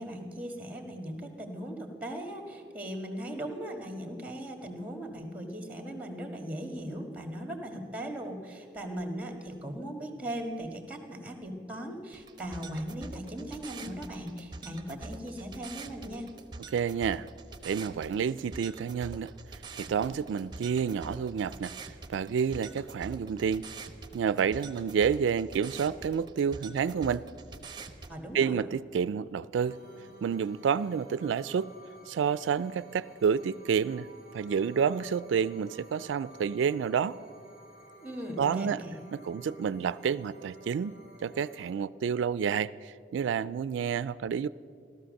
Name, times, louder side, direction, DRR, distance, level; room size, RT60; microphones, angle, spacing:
voice 1, 0.0-16.3 28.1-28.6 38.0-38.9, equal, 10° right, 4 dB, 1.6 m, -38 dB
sound 1, 12.1-28.1, right 3 dB, 25° right, 0.8 m, -45 dB
voice 2, 16.7-17.3 17.6-19.3 19.8-23.6 24.1-27.3 28.3-29.8 30.2-31.7 32.1-34.1 34.3-37.2 38.4-38.8 39.1-41.0 41.2-44.5, right 7 dB, 90° right, 16 dB, 0.3 m, -29 dB
sound 2, 29.6-41.7, right 1 dB, 45° left, 2.6 m, -54 dB
16.0 x 13.0 x 6.4 m, 2.4 s
head